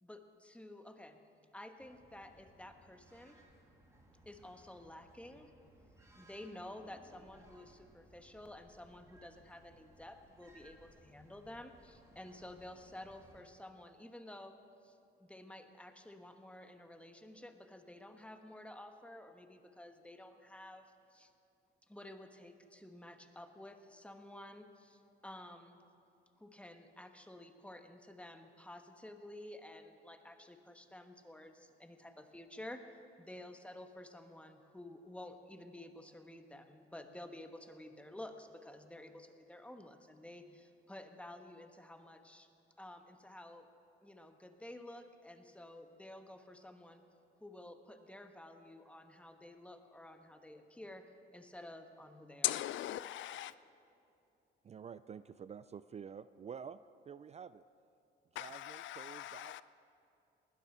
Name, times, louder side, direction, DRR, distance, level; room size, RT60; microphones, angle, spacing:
voice 1, 0.0-1.2 1.5-3.4 4.2-5.5 6.2-21.3 21.9-25.8 26.4-32.8 33.2-42.5 42.8-43.7 44.0-47.0 47.4-52.6, left 1 dB, 5° left, 1.2 m, -52 dB
sound 1, 1.8-13.4, right 1 dB, 15° right, 2.4 m, -63 dB
voice 2, 52.4-53.5 58.3-59.6, left 13 dB, 75° left, 0.4 m, -39 dB
voice 3, 54.6-56.8 57.1-57.6 58.3-59.6, right 7 dB, 35° right, 0.4 m, -49 dB
19.5 x 12.5 x 4.4 m
cardioid pair, 90°, 20 cm